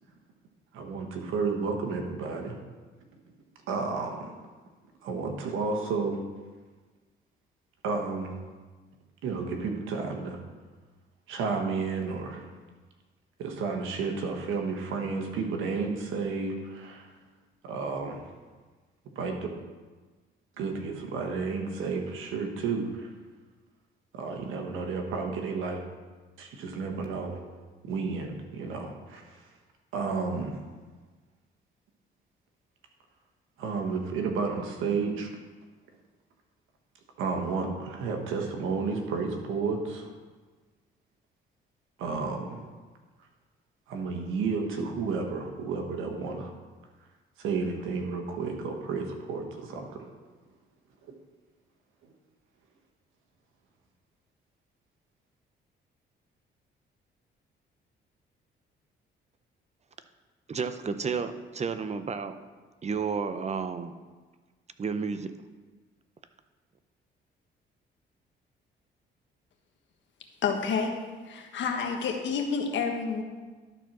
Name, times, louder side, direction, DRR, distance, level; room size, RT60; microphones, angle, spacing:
voice 1, 0.7-2.6 3.7-4.3 5.0-6.2 7.8-8.3 9.2-10.4 11.3-12.5 13.4-17.1 17.6-18.2 19.1-19.4 20.6-23.1 24.1-25.8 26.4-27.4 27.8-29.5 29.9-30.6 33.6-35.3 37.2-40.1 42.0-42.6 43.9-46.5 47.4-50.1 51.0-51.1 52.0-52.1, right 4 dB, 90° right, 3 dB, 1.3 m, -32 dB
voice 2, 60.5-62.3 62.8-63.9 64.8-65.3, right 5 dB, 35° right, 10 dB, 0.7 m, -31 dB
voice 3, 70.4-70.9 71.3-73.2, left 5 dB, 70° left, 3 dB, 1.4 m, -29 dB
12.0 x 4.5 x 6.1 m, 1.4 s
cardioid pair, 90°, 20 cm